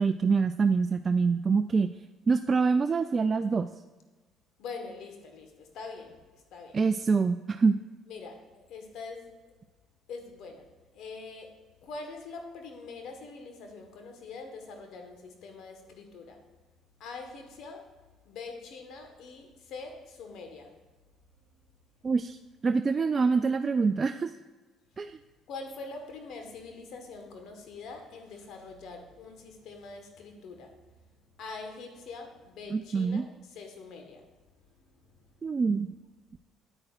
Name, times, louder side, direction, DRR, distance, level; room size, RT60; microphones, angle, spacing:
voice 1, 0.0-1.9 2.3-3.7 6.7-7.8 22.0-22.4 22.6-24.3 25.0-25.2 32.7-33.3 35.4-35.9, right 4 dB, 35° right, 8 dB, 0.3 m, -25 dB
voice 2, 4.6-6.8 8.1-9.5 10.1-16.5 17.0-20.8 25.5-30.8 31.4-34.3 34.8-34.9, left 4 dB, 70° left, 4 dB, 1.3 m, -44 dB
8.9 x 8.8 x 2.5 m, 1.2 s
supercardioid pair, 65°, 0 cm